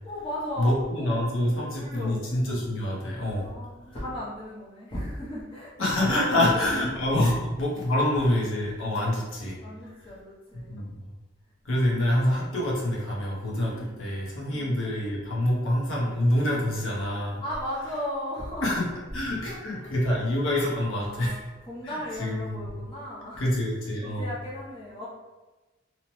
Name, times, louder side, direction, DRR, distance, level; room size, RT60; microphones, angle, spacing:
voice 1, 0.0-2.5 3.4-6.9 7.2-7.4 9.6-10.9 11.7-12.0 13.7-14.0 14.4-14.7 17.4-19.0 19.5-19.9 20.9-23.5 24.0-25.1, left 1 dB, 25° left, -7 dB, 0.6 m, -37 dB
voice 2, 0.6-3.5 5.8-9.6 10.7-10.9 11.6-17.4 18.6-18.8 19.1-21.4 21.8-22.6 23.4-24.3, left 1 dB, 75° left, -4 dB, 0.7 m, -26 dB
2.8 x 2.0 x 2.9 m, 1.2 s
head